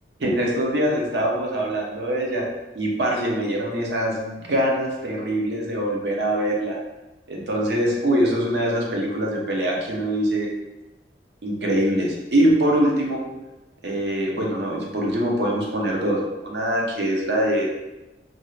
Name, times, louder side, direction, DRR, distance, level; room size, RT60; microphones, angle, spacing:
voice 1, 0.2-2.4 2.7-6.8 7.3-10.5 11.4-13.2 13.8-17.7, right 1 dB, 70° right, -2 dB, 0.7 m, -23 dB
2.6 x 2.4 x 3.0 m, 1.0 s
head